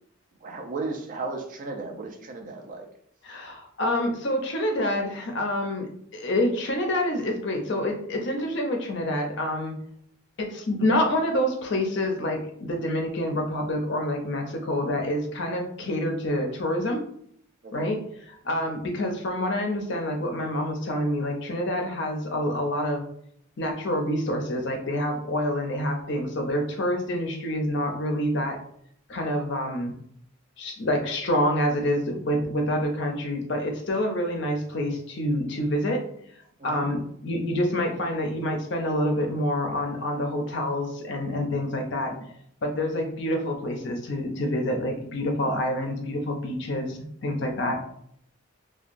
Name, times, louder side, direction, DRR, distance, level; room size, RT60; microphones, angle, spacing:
voice 1, 0.4-2.9 17.6-17.9 36.6-36.9, right 3 dB, 40° right, 3 dB, 0.4 m, -35 dB
voice 2, 3.2-9.8 10.4-17.0 17.7-18.0 18.4-23.0 23.6-28.6 29.1-29.9 30.6-36.0 36.6-42.1 42.6-47.8, left 1 dB, 55° left, 3 dB, 0.5 m, -27 dB
2.8 x 2.2 x 2.5 m, 0.67 s
head